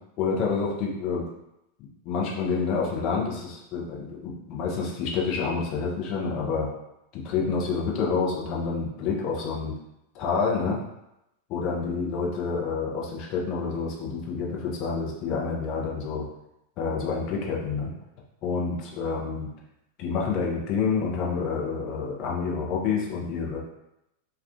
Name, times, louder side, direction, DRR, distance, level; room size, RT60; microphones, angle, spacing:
voice 1, 0.2-1.3 2.0-6.7 7.1-9.7 10.1-10.8 11.5-16.3 16.8-17.9 18.4-19.5 20.0-23.6, left 5 dB, 40° left, -2 dB, 0.6 m, -28 dB
2.3 x 2.3 x 2.4 m, 0.87 s
figure-of-eight pair, 90°, 0 cm